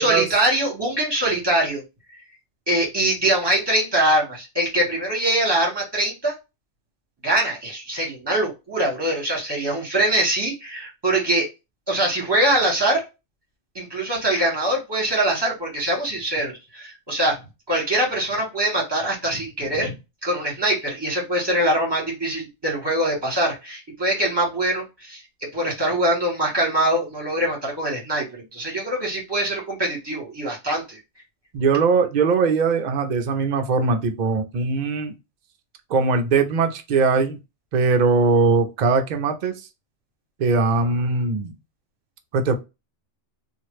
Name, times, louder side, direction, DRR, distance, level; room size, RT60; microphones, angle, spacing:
voice 1, 0.0-1.8 2.7-6.3 7.2-11.5 11.9-13.0 13.7-17.4 17.7-19.9 20.2-25.2 25.5-31.0, right 1 dB, 20° right, 1.5 m, -23 dB
voice 2, 31.5-35.1 35.9-37.4 37.7-39.6 40.4-41.5 42.3-42.5, right 4 dB, 55° right, 0.5 m, -20 dB
2.9 x 2.4 x 3.0 m
omnidirectional pair, 1.2 m